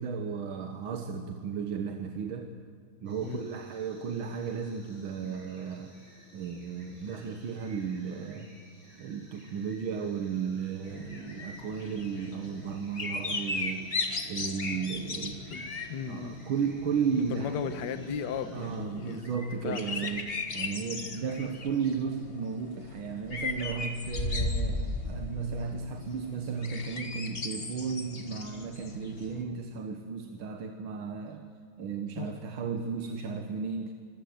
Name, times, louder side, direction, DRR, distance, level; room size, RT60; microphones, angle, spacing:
voice 1, 0.0-2.5 3.0-5.9 6.3-8.5 9.0-14.0 14.3-15.4 16.1-17.6 18.5-20.2 20.5-31.4 31.8-33.9, right 6 dB, 80° right, 5 dB, 2.0 m, -34 dB
sound 1, 3.0-18.8, equal, 25° right, 8.3 m, -58 dB
sound 2, 10.9-29.4, left 3 dB, 30° left, 1.5 m, -37 dB
voice 2, 15.5-16.4 17.2-19.3 19.6-20.1 32.2-32.3, left 7 dB, 60° left, 9 dB, 1.5 m, -36 dB
24.5 x 17.0 x 7.9 m, 2.1 s
omnidirectional pair, 2.2 m